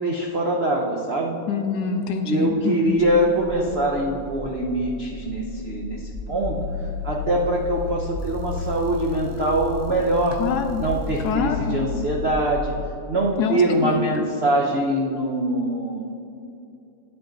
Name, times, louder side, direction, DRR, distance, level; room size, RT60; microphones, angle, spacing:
voice 1, 0.0-1.3 2.2-6.6 7.0-10.4 10.8-12.7 13.1-16.0, right 1 dB, 80° right, -1 dB, 0.5 m, -23 dB
voice 2, 1.5-3.0 10.4-10.8 11.2-11.7 13.4-14.2, left 6 dB, 70° left, 6 dB, 1.0 m, -25 dB
sound 1, 2.9-12.7, left 4 dB, 15° left, 1.6 m, -33 dB
9.7 x 7.8 x 3.8 m, 2.6 s
omnidirectional pair, 2.2 m